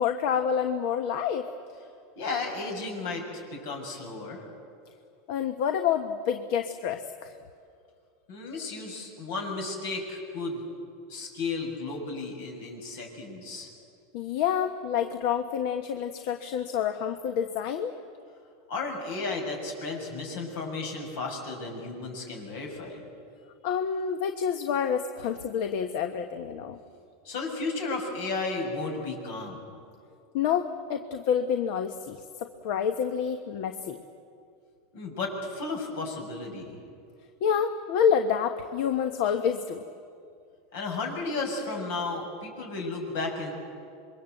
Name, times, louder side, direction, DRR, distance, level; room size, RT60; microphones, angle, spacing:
voice 1, 0.0-1.5 5.3-7.3 14.1-17.9 23.6-26.8 30.3-34.0 37.4-39.9, left 8 dB, 60° left, 7 dB, 1.2 m, -28 dB
voice 2, 2.1-3.2 3.5-4.4 8.3-10.6 11.1-13.7 18.7-23.0 27.2-29.6 34.9-36.8 40.7-43.5, left 3 dB, 75° left, 2 dB, 6.9 m, -33 dB
27.0 x 22.5 x 8.1 m, 2.4 s
supercardioid pair, 140°, 0 cm